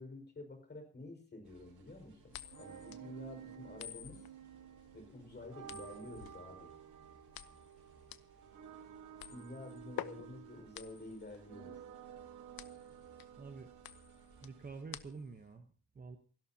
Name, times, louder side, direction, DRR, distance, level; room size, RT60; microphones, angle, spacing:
voice 1, 0.0-4.2 4.9-6.7 9.3-11.8, left 2 dB, 25° left, 5 dB, 5.2 m, -50 dB
sound 1, 1.4-14.8, right 3 dB, 65° right, 4.5 m, -65 dB
sound 2, 2.3-15.5, left 12 dB, 60° left, 0.9 m, -50 dB
sound 3, 2.4-15.3, right 9 dB, 50° right, 1.5 m, -53 dB
voice 2, 13.4-13.7 14.4-16.2, right 4 dB, 20° right, 6 dB, 1.0 m, -48 dB
28.5 x 12.0 x 2.8 m, 0.37 s
cardioid pair, 170°, 39 cm